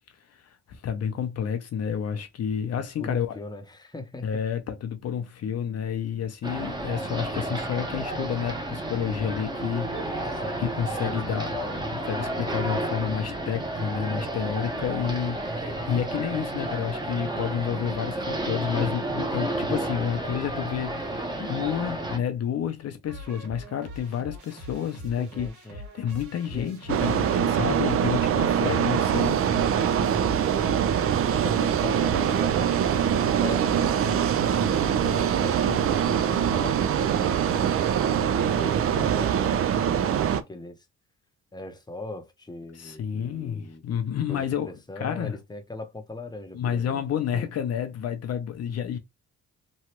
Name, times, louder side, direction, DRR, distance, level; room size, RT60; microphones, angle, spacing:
voice 1, 0.3-3.4 4.2-11.5 12.1-29.4 42.7-45.4 46.5-49.0, left 8 dB, 55° left, 0.6 m, -30 dB
voice 2, 2.8-4.3 10.3-10.7 11.0-12.0 25.0-25.8 26.5-26.8 29.8-37.8 38.0-40.8 41.5-43.8 44.3-47.0 47.3-47.5, left 2 dB, 15° left, 0.7 m, -40 dB
sound 1, 6.4-22.2, right 1 dB, 15° right, 0.9 m, -31 dB
sound 2, 23.1-35.5, left 1 dB, 70° right, 1.6 m, -43 dB
sound 3, 26.9-40.4, right 8 dB, 50° right, 0.4 m, -23 dB
3.1 x 2.3 x 2.9 m
cardioid pair, 90°, 30 cm